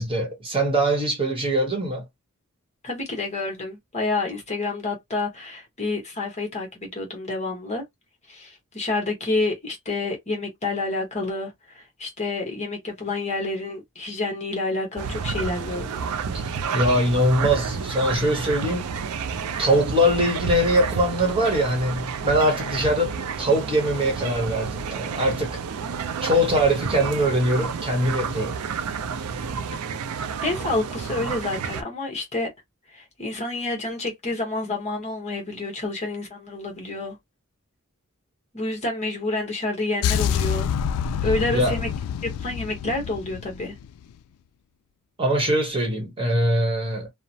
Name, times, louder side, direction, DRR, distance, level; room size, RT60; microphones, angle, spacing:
voice 1, 0.0-2.0 16.3-18.9 19.6-25.6 26.2-28.6 41.5-41.8 45.2-47.1, equal, 25° right, 1.0 m, -22 dB
voice 2, 2.8-7.8 8.3-16.0 29.7-29.8 30.4-32.5 32.9-37.2 38.5-40.7 41.2-41.9 42.2-43.8, left 2 dB, 30° left, 1.1 m, -29 dB
sound 1, 15.0-31.8, right 6 dB, 90° right, 0.4 m, -30 dB
sound 2, 40.0-44.1, left 8 dB, 80° left, 0.3 m, -27 dB
2.9 x 2.0 x 2.7 m
head